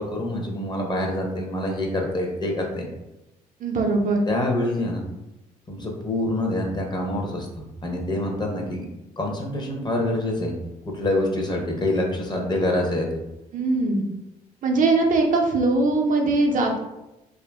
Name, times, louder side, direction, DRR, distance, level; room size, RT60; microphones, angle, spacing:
voice 1, 0.0-2.9 4.3-5.1 5.7-8.9 9.2-10.5 10.9-13.1, left 1 dB, 25° left, 1 dB, 0.7 m, -26 dB
voice 2, 3.6-4.2 13.5-14.0 14.6-16.8, right 3 dB, 50° right, 1 dB, 0.5 m, -21 dB
2.7 x 2.4 x 2.2 m, 0.96 s
hypercardioid pair, 55°, 17 cm